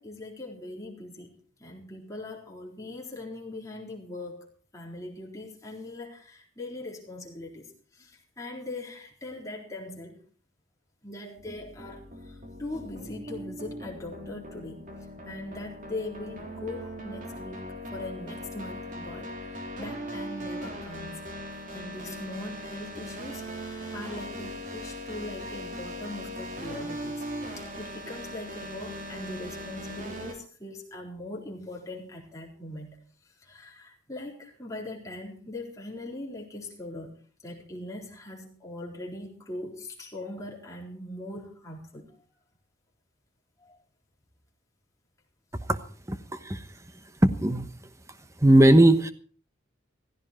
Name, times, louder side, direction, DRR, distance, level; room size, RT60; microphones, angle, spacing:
voice 1, 0.0-10.2 11.0-21.1 21.7-37.1 37.4-42.2 43.6-43.8, left 2 dB, 15° left, -2 dB, 4.0 m, -41 dB
sound 1, 11.4-30.3, equal, 40° right, 3.6 m, -39 dB
voice 2, 46.1-46.7 47.2-47.7 48.4-49.1, right 1 dB, 15° right, 10 dB, 1.0 m, -19 dB
16.0 x 15.0 x 4.4 m, 0.43 s
head